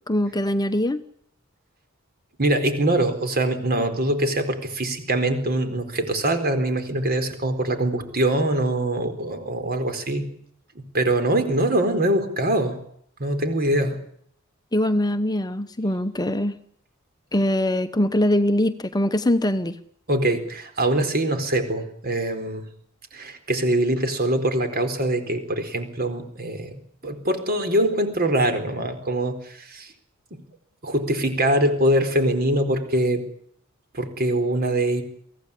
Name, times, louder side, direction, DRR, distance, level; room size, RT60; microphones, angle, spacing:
voice 1, 0.1-1.0 14.7-16.5 17.3-19.8, left 1 dB, 20° left, 10 dB, 0.9 m, -22 dB
voice 2, 2.4-10.3 10.7-12.8 13.2-14.0 20.1-22.7 23.1-29.9 30.3-30.4 30.8-33.2 33.9-35.0, right 1 dB, 45° right, 8 dB, 4.3 m, -23 dB
24.0 x 16.5 x 10.0 m, 0.66 s
head